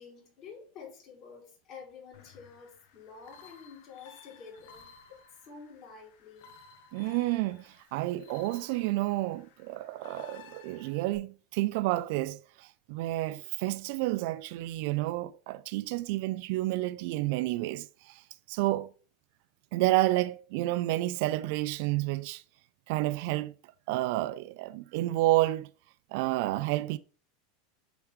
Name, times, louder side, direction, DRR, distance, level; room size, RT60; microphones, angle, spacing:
voice 1, 0.0-6.5, left 5 dB, 50° left, 3.2 m, -49 dB
sound 1, 2.1-11.2, left 7 dB, 65° left, 0.9 m, -55 dB
voice 2, 6.9-18.2 18.5-18.9 19.7-22.4 22.9-23.5 23.9-25.7 26.1-27.0, right 17 dB, 65° right, 0.3 m, -30 dB
7.9 x 3.3 x 3.6 m
supercardioid pair, 120°, 0 cm